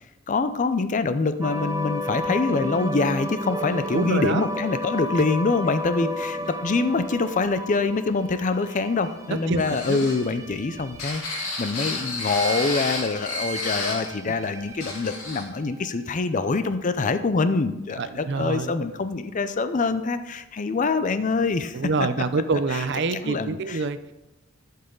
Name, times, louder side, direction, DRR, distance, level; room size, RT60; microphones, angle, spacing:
voice 1, 0.3-21.8 22.7-22.8 23.1-23.8, left 3 dB, 40° left, 11 dB, 0.5 m, -25 dB
sound 1, 1.4-15.9, left 1 dB, 15° right, 0.5 m, -34 dB
voice 2, 3.9-4.4 6.4-6.5 9.3-10.1 18.0-18.8 21.7-24.0, right 4 dB, 60° right, 12 dB, 0.5 m, -26 dB
sound 2, 9.6-14.1 14.4-14.5 14.8-15.4, left 2 dB, 85° left, 2.5 m, -31 dB
11.5 x 5.6 x 3.8 m, 0.97 s
head